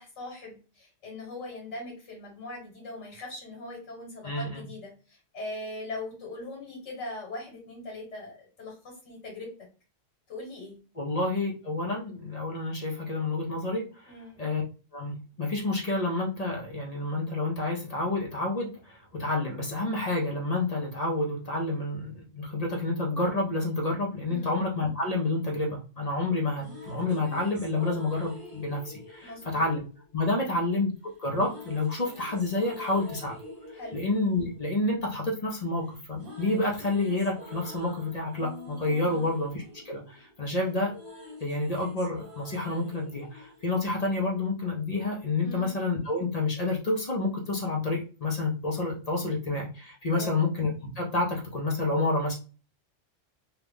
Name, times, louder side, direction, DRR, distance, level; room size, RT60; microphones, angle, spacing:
voice 1, 0.0-9.5 10.3-10.8 14.1-14.5 24.3-24.6 29.2-29.6 30.4-30.6 33.7-34.0 39.0-39.3 45.4-45.7 50.1-50.4, left 2 dB, 70° left, -2 dB, 1.6 m, -41 dB
voice 2, 4.2-4.6 11.0-14.1 14.4-14.6 14.9-29.8 30.1-30.9 31.2-33.4 33.9-40.9 41.4-52.4, left 2 dB, 40° left, -1 dB, 0.7 m, -29 dB
sound 1, 26.3-30.5 31.3-35.6 35.9-44.4, left 1 dB, 50° right, 1.0 m, -47 dB
2.8 x 2.4 x 3.4 m, 0.35 s
omnidirectional pair, 1.3 m